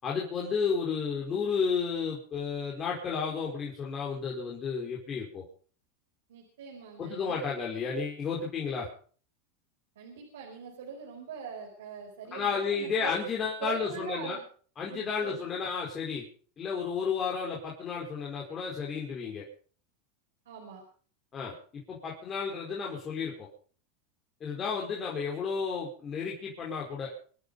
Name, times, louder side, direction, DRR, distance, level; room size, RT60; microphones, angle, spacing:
voice 1, 0.0-5.4 7.0-8.9 12.3-14.4 14.8-16.3 16.6-19.4 21.3-23.5 24.4-27.1, left 5 dB, 30° left, -3 dB, 4.6 m, -32 dB
voice 2, 6.3-7.6 9.9-13.1 13.6-14.4 14.9-15.4 20.4-20.8 24.5-24.7, right 6 dB, 85° right, 1 dB, 4.8 m, -42 dB
25.0 x 9.9 x 5.3 m, 0.44 s
supercardioid pair, 115°, 0 cm